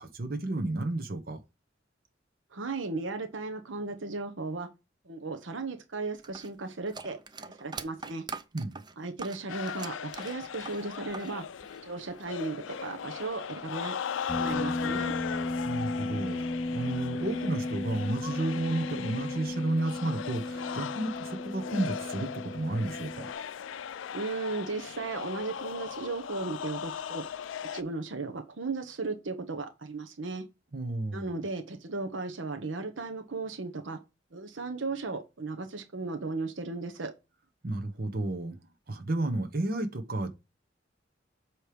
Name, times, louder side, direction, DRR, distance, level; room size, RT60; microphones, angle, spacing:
voice 1, 0.0-1.4 8.5-8.7 15.6-16.4 16.7-23.3 30.7-31.4 37.6-38.6 38.9-40.3, right 2 dB, 50° right, 1.1 m, -32 dB
voice 2, 2.5-4.7 5.0-8.2 9.0-11.4 11.8-13.9 14.4-15.2 24.1-27.2 27.7-30.5 31.1-34.0 34.3-37.1, right 3 dB, 90° right, 1.0 m, -36 dB
sound 1, 6.2-11.3 11.6-12.5, right 4 dB, 25° right, 0.5 m, -43 dB
sound 2, 9.5-27.8, left 8 dB, 90° left, 0.4 m, -38 dB
sound 3, 14.3-23.3, left 2 dB, ahead, 0.9 m, -35 dB
7.9 x 3.2 x 5.0 m
head